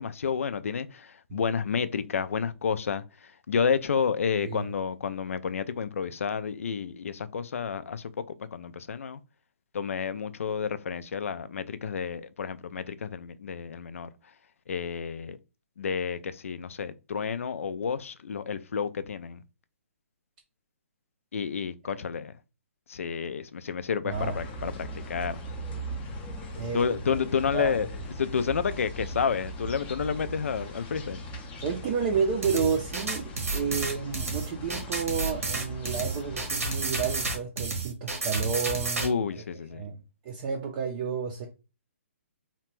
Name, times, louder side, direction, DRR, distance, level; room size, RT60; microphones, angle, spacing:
voice 1, 0.0-8.2 8.5-9.2 9.7-14.1 14.7-15.4 15.8-19.4 21.3-22.3 22.9-25.4 26.7-27.9 28.2-31.2 39.0-39.9, left 6 dB, 75° left, 0.3 m, -30 dB
voice 2, 24.0-24.3 26.5-27.0 27.5-27.7 31.6-39.2 39.7-40.0 40.2-41.5, right 6 dB, 30° right, 0.4 m, -31 dB
sound 1, 24.1-37.4, right 1 dB, 20° left, 0.5 m, -39 dB
sound 2, 32.4-39.1, right 3 dB, 90° right, 1.0 m, -31 dB
2.8 x 2.2 x 3.0 m
hypercardioid pair, 145°, 7 cm